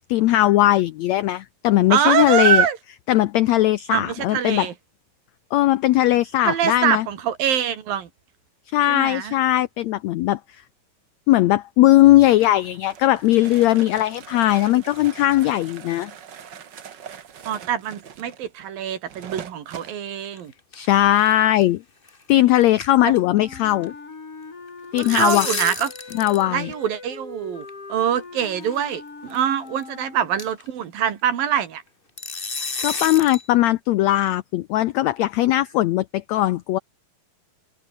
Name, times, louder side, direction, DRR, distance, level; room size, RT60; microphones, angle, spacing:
voice 1, 0.1-2.7 3.1-4.7 5.5-7.1 8.7-10.4 11.3-16.1 20.7-21.8 22.3-23.9 24.9-25.5 26.1-26.7 32.8-36.8, left 15 dB, 85° left, 1.5 m, -19 dB
voice 2, 1.9-2.8 3.9-4.7 6.4-8.1 8.9-9.4 17.5-20.5 23.0-23.1 25.0-25.9 26.5-31.8, right 9 dB, 85° right, 4.1 m, -24 dB
sound 1, 12.4-20.0, right 8 dB, 50° right, 1.3 m, -41 dB
sound 2, 20.1-20.9 21.2-21.3 21.6-21.7 22.1-22.3 22.6-23.4 23.6-23.9 24.7-26.5 26.7-26.8 27.7-27.8 28.6-28.8 29.3-29.4 29.8-29.9 30.4-30.7 32.2-33.5, left 3 dB, 25° left, 1.3 m, -31 dB
Wind instrument woodwind instrument, 23.2-30.5, left 4 dB, 40° left, 5.7 m, -40 dB
omnidirectional pair, 4.0 m